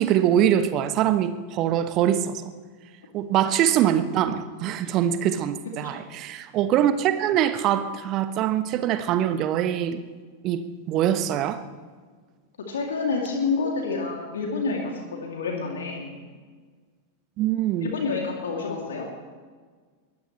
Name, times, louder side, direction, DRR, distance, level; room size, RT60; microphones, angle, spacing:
voice 1, 0.0-2.4 3.1-10.0 10.4-11.6 17.4-17.9, right 10 dB, 35° right, 10 dB, 1.2 m, -23 dB
voice 2, 12.6-16.2 17.8-19.1, left 4 dB, 65° left, 0 dB, 2.7 m, -28 dB
22.5 x 19.0 x 3.2 m, 1.5 s
figure-of-eight pair, 90°, 0 cm